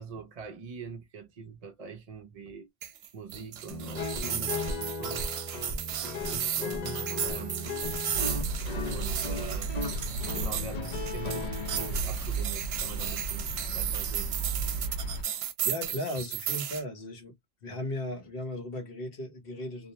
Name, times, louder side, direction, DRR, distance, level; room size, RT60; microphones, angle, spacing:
voice 1, 0.0-2.7 3.1-5.3 6.3-7.8 8.9-9.7 10.3-14.4, right 6 dB, 50° right, 0.5 m, -43 dB
sound 1, 2.8-16.8, right 9 dB, 75° right, 0.8 m, -35 dB
Guitar, 3.7-12.0, left 3 dB, 45° left, 0.6 m, -36 dB
sound 2, 8.1-15.2, right 3 dB, 85° left, 1.2 m, -35 dB
voice 2, 15.6-17.4 17.6-19.9, left 1 dB, 65° left, 1.1 m, -36 dB
2.6 x 2.1 x 2.7 m
omnidirectional pair, 1.1 m